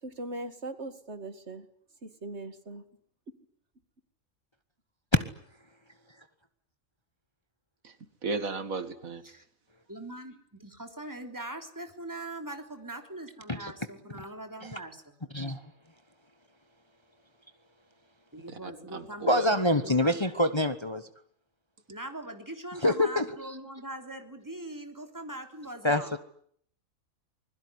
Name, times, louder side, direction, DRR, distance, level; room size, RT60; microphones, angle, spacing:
voice 1, 0.0-1.7 2.0-2.9, right 2 dB, 55° right, 10 dB, 2.4 m, -40 dB
voice 2, 8.2-9.2 18.5-19.4, right 4 dB, 85° right, 10 dB, 2.5 m, -35 dB
voice 3, 9.9-15.0 15.3-15.4 18.3-20.3 21.9-26.2, right 1 dB, 15° right, 5 dB, 3.4 m, -42 dB
voice 4, 19.3-21.1 22.8-23.2 25.8-26.2, left 1 dB, 20° left, 10 dB, 1.2 m, -25 dB
26.0 x 21.5 x 9.8 m, 0.65 s
omnidirectional pair, 1.4 m